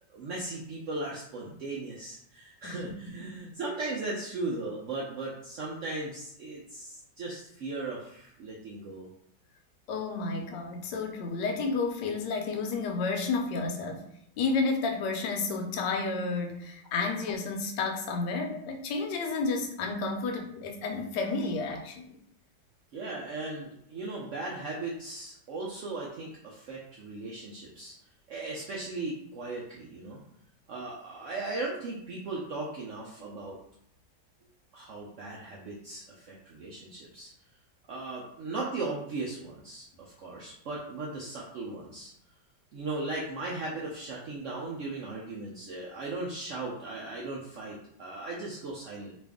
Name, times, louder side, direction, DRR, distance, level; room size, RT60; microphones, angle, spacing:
voice 1, 0.1-9.1 22.9-27.9 28.3-30.2 30.7-33.6 34.7-37.3 37.9-39.9 40.2-42.1 42.7-49.1, right 2 dB, 90° right, -4 dB, 0.6 m, -37 dB
voice 2, 2.6-3.4 9.9-14.0 14.4-22.2, left 4 dB, 75° left, 3 dB, 1.2 m, -31 dB
3.0 x 2.5 x 3.4 m, 0.69 s
omnidirectional pair, 2.0 m